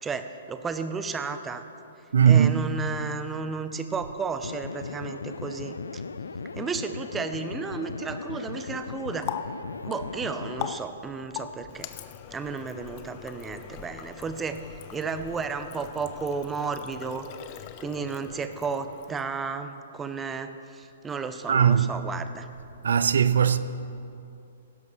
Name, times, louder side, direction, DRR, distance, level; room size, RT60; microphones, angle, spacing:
voice 1, 0.0-1.6 2.3-6.0 6.6-9.3 9.8-11.9 12.3-14.6 14.9-17.3 17.5-22.5, right 5 dB, 15° right, 0.7 m, -33 dB
voice 2, 2.1-2.6 21.5-21.9 22.8-23.6, right 8 dB, 75° right, 0.6 m, -19 dB
sound 1, 4.4-10.8, left 4 dB, 85° left, 0.5 m, -37 dB
Water tap faucet, 8.7-19.5, left 10 dB, 40° left, 0.6 m, -41 dB
16.0 x 12.0 x 3.2 m
hypercardioid pair, 125°, 0 cm